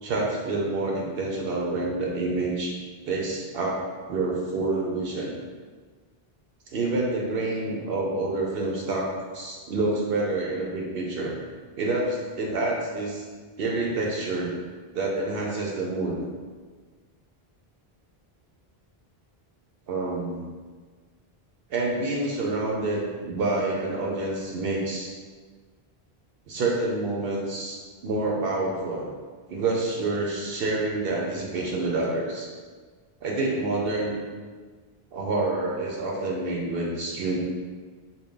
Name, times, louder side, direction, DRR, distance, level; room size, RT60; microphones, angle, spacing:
voice 1, 0.0-2.7 3.0-3.8 4.1-5.3 6.7-11.3 11.8-13.3 13.6-14.5 14.9-16.3 19.9-20.4 21.7-25.1 26.5-29.1 29.5-32.5 33.2-34.1 35.1-37.4, right 2 dB, 70° right, -2 dB, 0.7 m, -28 dB
3.5 x 2.2 x 3.6 m, 1.5 s
omnidirectional pair, 1.0 m